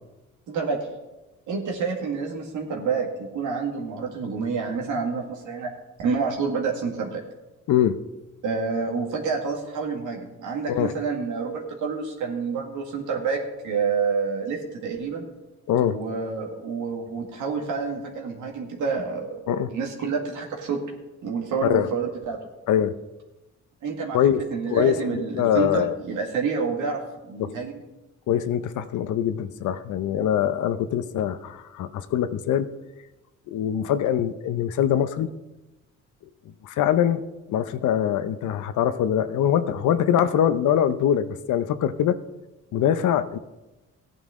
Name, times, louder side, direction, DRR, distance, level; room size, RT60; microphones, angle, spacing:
voice 1, 0.5-0.8 1.5-5.7 6.0-7.2 8.4-15.2 15.9-19.4 19.7-20.8 21.2-22.4 23.8-24.2 24.5-27.0 27.3-27.8, right 5 dB, 80° right, 1 dB, 1.9 m, -28 dB
voice 2, 15.7-16.0 19.5-19.7 21.7-21.9 22.7-22.9 24.1-24.4 24.7-25.9 27.4-27.5 28.3-32.7 33.5-35.3 36.6-37.2 37.5-42.2 42.7-43.4, left 10 dB, 75° left, 12 dB, 0.8 m, -23 dB
15.0 x 9.1 x 3.7 m, 1.0 s
cardioid pair, 90°, 30 cm